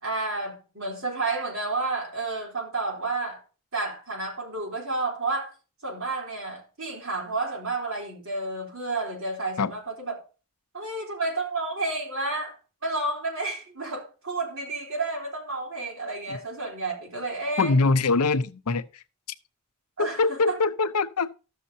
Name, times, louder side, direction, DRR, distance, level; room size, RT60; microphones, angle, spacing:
voice 1, 0.0-3.4 3.7-5.5 5.8-10.2 10.7-12.5 12.8-17.7 20.0-20.6, right 3 dB, 65° right, 3.5 m, -31 dB
voice 2, 17.6-19.0 20.0-21.3, left 3 dB, 85° left, 0.7 m, -23 dB
14.0 x 6.6 x 2.7 m
head